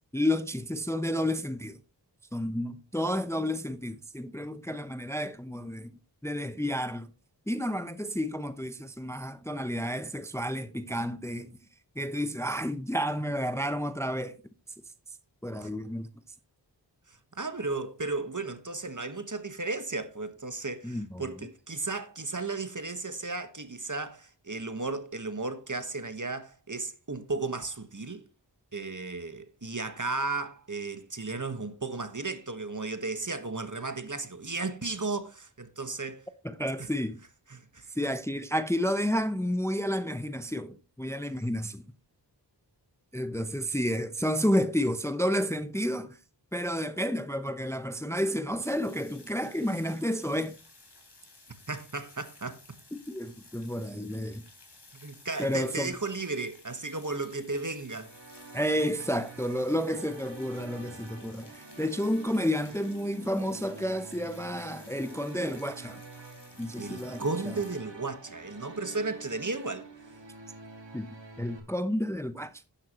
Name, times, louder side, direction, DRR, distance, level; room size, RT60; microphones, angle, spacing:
voice 1, 0.1-1.8 2.3-5.9 6.2-7.1 7.5-11.5 12.0-14.4 15.4-16.1 20.8-21.2 36.4-37.2 37.9-41.8 43.1-46.2 46.5-50.5 52.9-54.4 55.4-55.9 58.5-66.0 66.6-67.5 70.9-71.1 71.4-72.5, equal, 5° left, 0.7 m, -31 dB
voice 2, 17.1-28.2 28.7-36.2 36.8-36.9 37.5-37.9 51.7-52.6 54.9-58.1 66.8-69.9, right 3 dB, 45° right, 1.5 m, -34 dB
sound 1, 48.6-67.8, left 2 dB, 65° left, 3.6 m, -55 dB
sound 2, 57.9-71.6, right 3 dB, 80° right, 2.6 m, -48 dB
11.5 x 10.0 x 3.0 m
wide cardioid pair, 50°, 43 cm